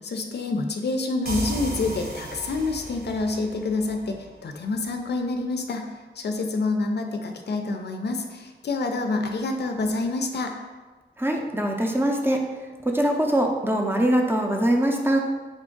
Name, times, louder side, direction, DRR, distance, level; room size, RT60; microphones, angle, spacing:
voice 1, 0.0-10.5, left 3 dB, 65° left, 5 dB, 0.4 m, -27 dB
sound 1, 1.2-4.8, right 1 dB, 55° right, 1.0 m, -35 dB
voice 2, 11.2-12.4 12.8-15.2, right 1 dB, 10° right, 1 dB, 0.5 m, -22 dB
3.8 x 2.5 x 3.7 m, 1.3 s
wide cardioid pair, 70°, 19 cm